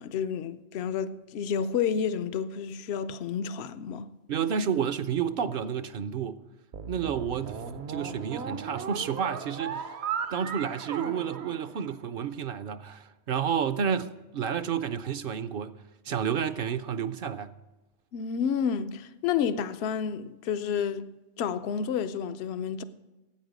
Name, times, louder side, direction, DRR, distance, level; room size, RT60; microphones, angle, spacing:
voice 1, 0.0-4.1 18.1-22.8, left 7 dB, 75° left, 0.8 m, -30 dB
voice 2, 4.3-6.4 6.9-9.9 10.3-15.7 16.1-17.5, right 7 dB, 65° right, 0.7 m, -30 dB
sound 1, 6.7-12.2, right 6 dB, 80° right, 1.0 m, -37 dB
13.0 x 8.5 x 5.1 m
omnidirectional pair, 1.1 m